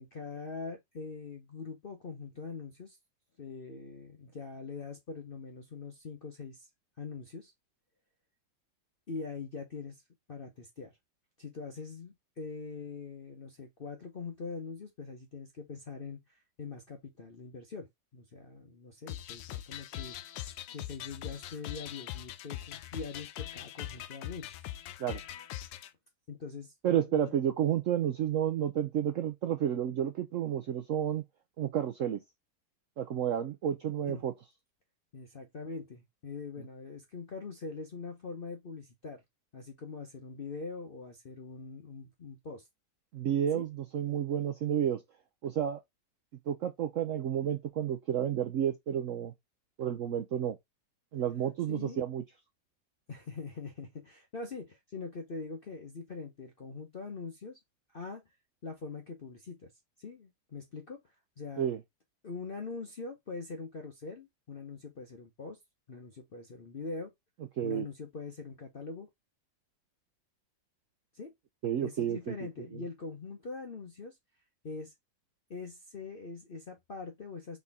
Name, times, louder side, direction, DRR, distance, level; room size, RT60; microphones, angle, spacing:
voice 1, 0.0-3.0 3.4-6.7 7.0-7.5 9.1-10.0 10.3-10.9 11.4-24.7 26.3-27.4 34.1-34.2 35.1-39.2 39.5-42.7 43.5-43.7 51.7-52.1 53.1-57.6 57.9-58.2 58.6-59.7 60.0-61.7 62.2-65.6 65.9-67.1 67.6-69.1 71.1-71.3 71.8-74.2 74.6-74.9 75.5-77.6, left 4 dB, 55° left, 0.6 m, -43 dB
sound 1, 19.1-25.9, left 13 dB, 80° left, 1.2 m, -42 dB
voice 2, 26.8-31.2 31.6-32.2 33.0-34.3 43.1-45.0 45.4-45.8 46.5-49.3 49.8-50.6 51.1-52.2 61.6-61.8 67.6-67.9 71.6-72.3 72.7-72.8, right 10 dB, 75° right, 0.7 m, -31 dB
4.2 x 3.6 x 3.4 m
omnidirectional pair, 2.0 m